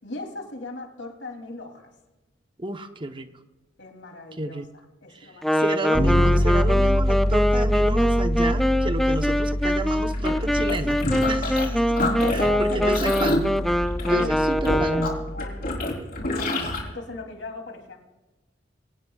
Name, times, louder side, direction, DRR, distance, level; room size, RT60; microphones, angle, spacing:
voice 1, 0.0-1.9 3.8-4.6 5.0-5.5 5.8-6.6 12.0-13.2 14.0-14.3 14.9-18.0, left 2 dB, 75° left, 2 dB, 3.1 m, -37 dB
voice 2, 2.6-3.3 4.4-4.7 5.1-11.8 12.3-13.5 14.0-15.1, right 1 dB, 25° right, 8 dB, 1.0 m, -31 dB
Wind instrument woodwind instrument, 5.4-15.3, equal, ahead, 0.5 m, -24 dB
Bass guitar, 5.9-15.7, equal, 20° left, 5.1 m, -26 dB
sound 1, 10.1-11.7 12.0-16.8, left 1 dB, 55° left, 3.7 m, -28 dB
23.5 x 18.0 x 2.4 m, 1.1 s
head